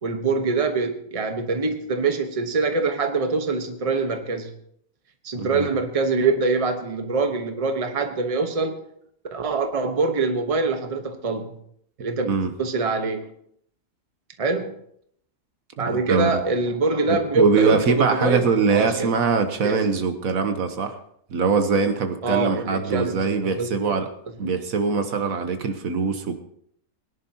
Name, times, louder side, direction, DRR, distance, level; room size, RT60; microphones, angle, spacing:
voice 1, 0.0-4.5 5.2-8.8 9.3-11.5 12.0-13.3 14.4-14.8 15.8-19.1 19.6-19.9 22.2-23.3 23.5-23.9 24.4-24.6, right 4 dB, 25° right, 5 dB, 1.1 m, -24 dB
voice 2, 5.4-5.7 12.2-12.5 15.9-16.3 17.1-21.0 21.3-24.1 24.4-26.4, right 4 dB, 70° right, 7 dB, 1.5 m, -22 dB
21.5 x 10.5 x 2.9 m, 0.67 s
omnidirectional pair, 1.5 m